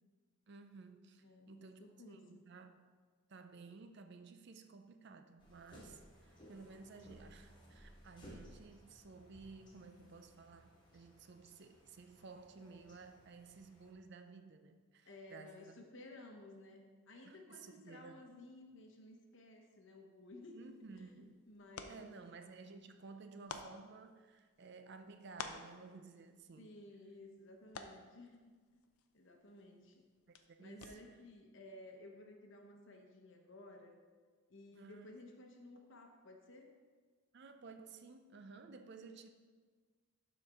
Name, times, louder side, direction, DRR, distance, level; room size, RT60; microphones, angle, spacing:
voice 1, 0.5-2.8 3.3-15.7 17.2-18.3 20.5-21.4 21.9-26.7 30.3-31.0 34.7-35.2 37.3-39.3, right 4 dB, 50° right, 8 dB, 0.5 m, -55 dB
voice 2, 1.2-2.4 15.0-21.1 21.5-22.2 26.6-28.4 29.1-30.1 30.6-34.0 34.5-36.7, left 2 dB, 55° left, 3 dB, 1.0 m, -56 dB
sound 1, 5.4-13.9, equal, 20° left, 1.4 m, -60 dB
sound 2, 20.6-31.3, left 5 dB, 80° left, 0.6 m, -54 dB
12.0 x 4.3 x 3.6 m, 1.5 s
head